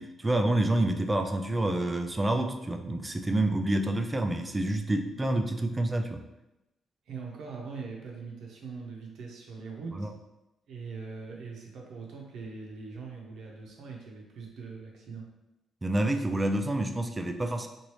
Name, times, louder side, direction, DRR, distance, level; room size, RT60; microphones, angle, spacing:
voice 1, 0.0-6.2 9.9-10.1 15.8-17.7, right 1 dB, 20° right, 6 dB, 0.3 m, -28 dB
voice 2, 7.1-10.1 10.7-15.3, right 4 dB, 75° right, -1 dB, 0.7 m, -42 dB
3.0 x 2.6 x 3.1 m, 0.94 s
cardioid pair, 90°, 0 cm